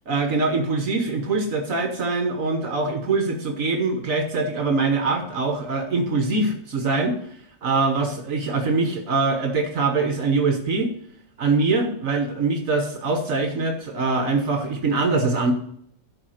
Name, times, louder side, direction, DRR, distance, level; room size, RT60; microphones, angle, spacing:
voice 1, 0.1-7.2 7.6-10.9 11.4-15.5, right 3 dB, 65° right, 5 dB, 1.4 m, -23 dB
12.0 x 4.9 x 6.4 m, 0.69 s
omnidirectional pair, 1.5 m